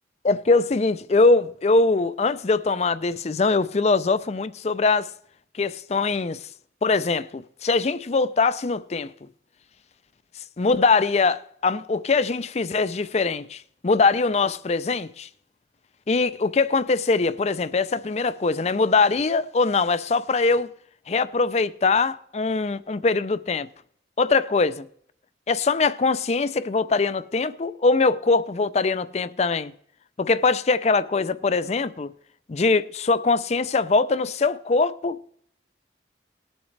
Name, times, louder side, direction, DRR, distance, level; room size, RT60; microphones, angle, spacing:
voice 1, 0.2-5.1 5.5-6.5 6.8-9.1 10.6-15.3 16.1-20.7 21.1-23.7 24.2-24.8 25.5-29.7 30.2-32.1 32.5-35.4, left 3 dB, 35° left, 0.4 m, -22 dB
19.0 x 7.2 x 3.3 m
head